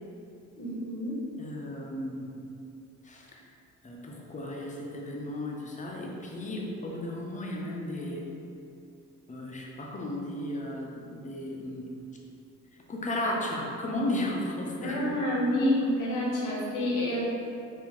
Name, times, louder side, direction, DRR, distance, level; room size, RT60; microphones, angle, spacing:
voice 1, 0.6-1.2 14.8-17.2, left 1 dB, 85° left, -4 dB, 0.9 m, -28 dB
voice 2, 1.4-2.3 3.0-3.4 3.8-8.2 9.3-11.9 12.9-15.1, left 1 dB, 25° left, -1 dB, 0.6 m, -34 dB
3.6 x 2.6 x 3.0 m, 2.6 s
cardioid pair, 85°, 30 cm